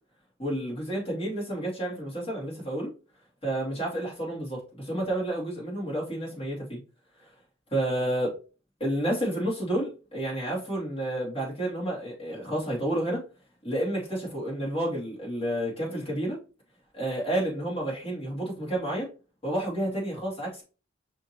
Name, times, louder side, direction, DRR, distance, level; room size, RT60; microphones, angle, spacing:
voice 1, 0.4-2.9 3.4-6.8 7.2-7.3 7.7-8.3 8.8-13.2 13.6-16.4 16.9-19.1 19.4-20.6, right 1 dB, 30° left, -5 dB, 2.4 m, -30 dB
5.7 x 2.9 x 2.8 m, 0.33 s
head